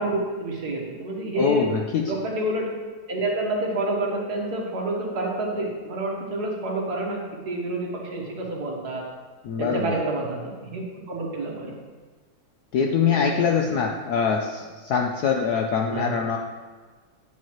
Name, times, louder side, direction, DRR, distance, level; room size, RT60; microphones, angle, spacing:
voice 1, 0.0-1.7 2.1-2.7 3.1-7.2 7.5-9.0 9.6-10.8 11.1-11.7 13.4-13.7 15.9-16.1, right 2 dB, 55° right, -1 dB, 1.7 m, -28 dB
voice 2, 1.4-2.1 9.4-10.0 12.7-16.4, left 6 dB, 70° left, 2 dB, 0.9 m, -23 dB
10.0 x 7.5 x 3.0 m, 1.4 s
omnidirectional pair, 2.2 m